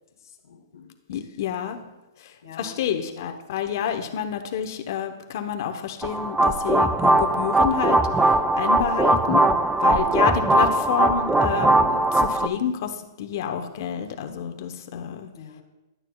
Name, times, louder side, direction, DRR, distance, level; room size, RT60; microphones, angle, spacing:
voice 1, 0.2-1.4 1.8-1.9 2.4-2.8 9.8-10.2 15.3-15.6, left 6 dB, 85° left, 1 dB, 1.7 m, -45 dB
voice 2, 1.1-1.8 2.6-8.0 8.6-9.5 9.8-12.9 13.2-15.3, left 8 dB, 55° left, 6 dB, 0.9 m, -28 dB
sound 1, 6.0-12.5, right 2 dB, 5° right, 0.3 m, -20 dB
12.5 x 9.0 x 2.3 m, 1.0 s
hypercardioid pair, 155°, 2 cm